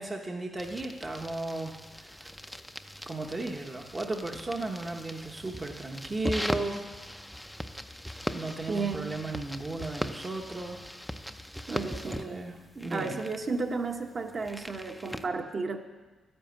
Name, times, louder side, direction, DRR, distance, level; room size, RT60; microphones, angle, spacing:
voice 1, 0.0-2.3 3.1-6.8 8.3-10.8 11.8-13.2, right 2 dB, 20° right, 2 dB, 0.9 m, -35 dB
sound 1, 0.6-15.3, equal, ahead, 0.6 m, -40 dB
voice 2, 8.7-9.1 11.7-12.4 12.9-15.8, right 4 dB, 40° right, 3 dB, 1.2 m, -33 dB
12.0 x 10.0 x 7.9 m, 1.2 s
cardioid pair, 140°, 0 cm